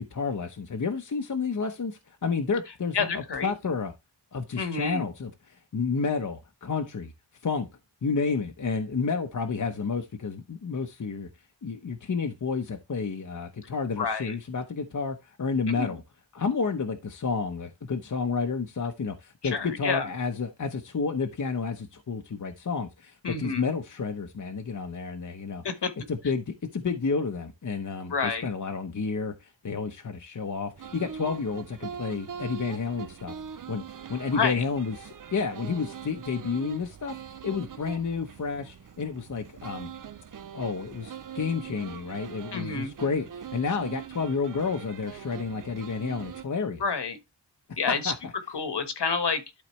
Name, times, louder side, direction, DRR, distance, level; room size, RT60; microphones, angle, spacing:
voice 1, 0.0-3.9 4.3-7.1 7.4-7.7 8.0-11.3 11.6-16.0 16.3-25.6 26.1-33.4 33.7-33.8 34.1-37.2 37.4-39.9 40.5-46.8 47.9-48.1, left 5 dB, 45° left, 0.9 m, -30 dB
voice 2, 2.9-3.5 4.6-5.0 14.0-14.3 15.7-16.0 19.4-20.1 23.2-23.6 25.6-25.9 28.1-28.5 34.3-34.6 42.5-42.9 46.8-47.2 47.8-48.1 48.5-49.4, left 5 dB, 65° left, 1.4 m, -29 dB
sound 1, 30.8-46.4, right 7 dB, 45° right, 0.7 m, -42 dB
12.0 x 4.1 x 3.2 m
wide cardioid pair, 95°, 44 cm